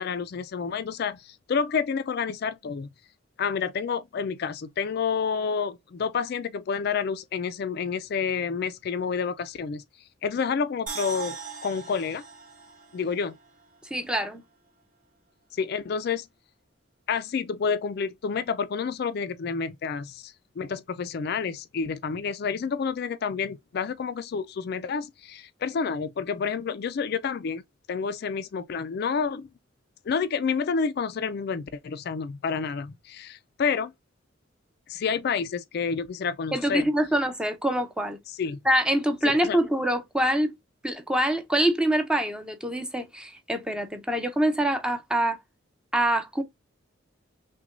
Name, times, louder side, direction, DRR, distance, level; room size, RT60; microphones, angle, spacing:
voice 1, 0.0-2.9 3.4-9.8 10.2-11.4 11.6-12.2 12.9-13.3 15.5-16.3 17.1-27.6 27.9-29.5 30.1-33.9 34.9-36.9 38.3-38.6 39.2-39.6, left 6 dB, 55° left, 0.4 m, -29 dB
sound 1, 10.9-14.1 14.4-14.5, right 6 dB, 40° right, 1.4 m, -40 dB
voice 2, 13.9-14.4 36.5-38.2 38.6-40.5 40.8-45.4 45.9-46.4, right 1 dB, 5° right, 0.6 m, -25 dB
5.9 x 2.2 x 2.4 m
head